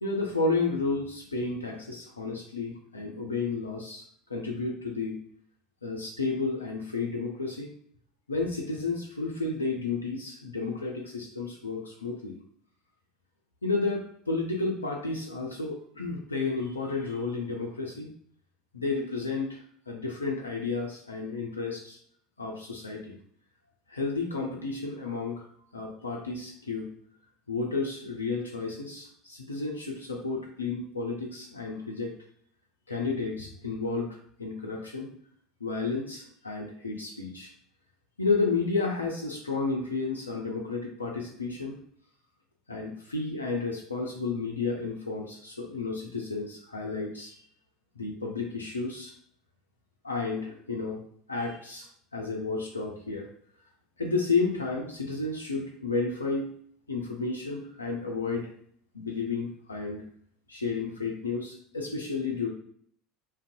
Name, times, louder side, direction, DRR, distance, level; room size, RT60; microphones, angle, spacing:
voice 1, 0.0-4.0 4.3-5.2 5.8-7.7 8.3-12.4 13.6-18.1 18.7-19.6 19.9-22.0 22.4-23.2 23.9-25.4 25.7-26.9 27.5-32.2 32.9-35.1 35.6-37.5 38.2-41.8 42.7-47.4 48.0-49.1 50.0-51.0 51.3-51.9 52.1-53.3 54.0-56.5 56.9-58.5 58.9-60.0 60.5-62.5, left 4 dB, 80° left, -1 dB, 0.3 m, -32 dB
2.5 x 2.1 x 2.5 m, 0.62 s
figure-of-eight pair, 70°, 0 cm